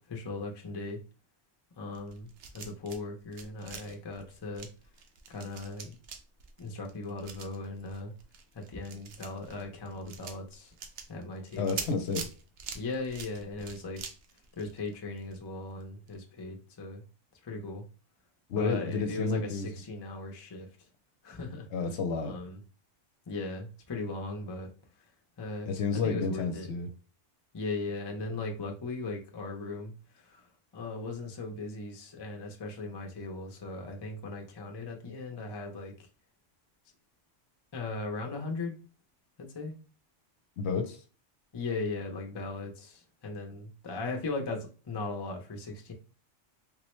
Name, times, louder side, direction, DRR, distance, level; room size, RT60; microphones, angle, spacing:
voice 1, 0.1-1.0 1.8-4.7 5.3-6.0 6.6-8.1 8.5-10.7 11.1-11.8 12.7-14.0 14.6-17.0 17.4-17.9 18.5-20.7 21.2-21.7 22.2-22.6 23.3-24.7 25.4-26.7 27.5-30.5 30.7-36.1 37.7-38.7 39.4-39.7 41.5-45.9, left 3 dB, 35° left, 2 dB, 0.4 m, -38 dB
sound 1, 1.9-3.0 3.3-15.4 15.7-15.8 16.1-16.2, right 6 dB, 70° right, 0.9 m, -45 dB
voice 2, 11.6-12.3 18.5-19.7 21.7-22.4 25.7-26.9 40.6-41.0, left 4 dB, 70° left, 6 dB, 0.8 m, -31 dB
3.6 x 2.1 x 3.0 m, 0.35 s
omnidirectional pair, 1.2 m